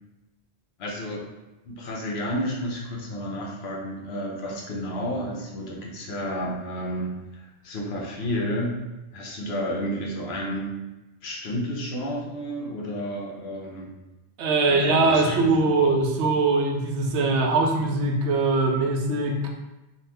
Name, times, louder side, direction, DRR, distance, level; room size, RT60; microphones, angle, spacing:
voice 1, 0.8-1.3 1.7-8.8 9.1-10.7 11.2-13.9 14.7-15.4 15.7-15.8, equal, 70° left, -2 dB, 0.9 m, -31 dB
voice 2, 14.4-19.4, right 3 dB, 85° right, 2 dB, 0.9 m, -22 dB
2.8 x 2.2 x 3.3 m, 1.0 s
omnidirectional pair, 1.1 m